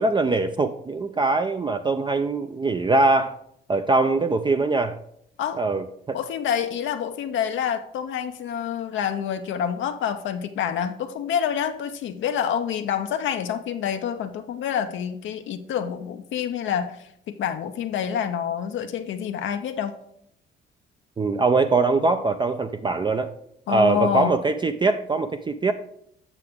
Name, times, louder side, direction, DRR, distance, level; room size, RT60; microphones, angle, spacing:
voice 1, 0.0-3.4 3.7-5.0 5.5-6.2 21.2-23.3 23.7-25.7, right 3 dB, 25° right, 8 dB, 0.4 m, -22 dB
voice 2, 6.1-19.9 23.7-24.3, left 8 dB, 75° left, 6 dB, 0.6 m, -27 dB
8.1 x 5.8 x 3.6 m, 0.72 s
cardioid pair, 90°, 20 cm